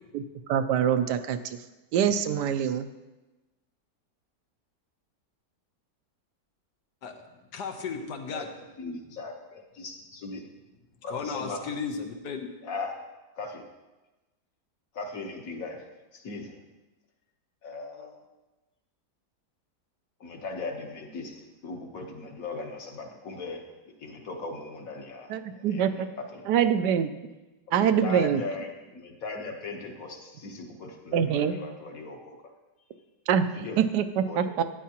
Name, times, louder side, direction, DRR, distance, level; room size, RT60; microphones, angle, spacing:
voice 1, 0.5-1.6 1.9-2.9 25.3-26.1 26.5-27.1 27.7-28.4 31.1-31.5 33.3-33.5 33.8-34.6, right 8 dB, 80° right, 10 dB, 1.2 m, -24 dB
voice 2, 7.5-8.5 11.1-12.5, left 5 dB, 80° left, 4 dB, 1.5 m, -34 dB
voice 3, 8.8-10.4 11.0-11.6 12.6-13.0 13.3-13.7 14.9-15.8 16.1-16.5 17.6-18.1 20.2-23.7 24.0-26.4 27.7-32.4 33.5-33.8 34.3-34.6, left 3 dB, 60° left, 3 dB, 1.4 m, -38 dB
12.0 x 9.2 x 2.9 m, 1.1 s
omnidirectional pair, 1.8 m